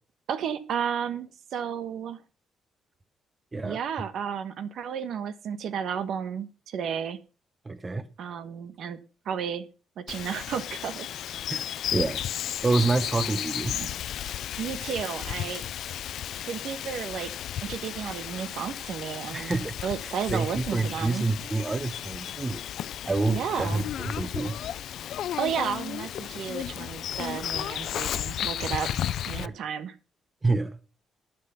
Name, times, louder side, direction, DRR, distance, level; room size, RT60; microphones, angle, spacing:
voice 1, 0.3-2.2 3.6-7.2 8.2-9.0 9.2-9.7 10.0-11.4 13.7-13.9 14.6-15.6 16.5-17.3 17.6-19.5 19.8-21.2 23.3-23.8 25.4-28.9 29.3-29.9, right 7 dB, 70° right, 1.3 m, -32 dB
voice 2, 7.6-8.1 11.5-11.7 11.9-12.2 12.6-13.7 19.3-19.7 20.0-22.6 23.1-24.6 29.4-29.5 30.4-30.8, right 3 dB, 20° right, 0.8 m, -27 dB
Bird vocalization bird call bird song, 10.1-29.5, left 11 dB, 75° left, 0.5 m, -34 dB
12.0 x 8.3 x 5.6 m
cardioid pair, 115°, 0 cm